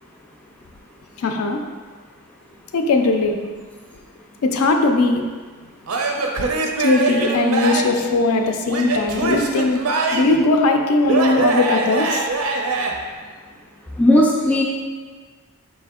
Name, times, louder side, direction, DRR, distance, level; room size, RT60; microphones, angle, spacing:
voice 1, 1.2-1.6 2.7-3.4 4.4-5.2 6.8-9.8 10.1-12.3, left 2 dB, 75° left, 4 dB, 0.4 m, -19 dB
Male speech man speaking / Yell / Laughter, 5.9-8.0 8.7-10.4 11.1-12.9, right 3 dB, 75° right, 0.5 m, -22 dB
voice 2, 13.9-14.6, left 1 dB, 5° left, -2 dB, 0.3 m, -17 dB
4.1 x 2.7 x 3.6 m, 1.5 s
head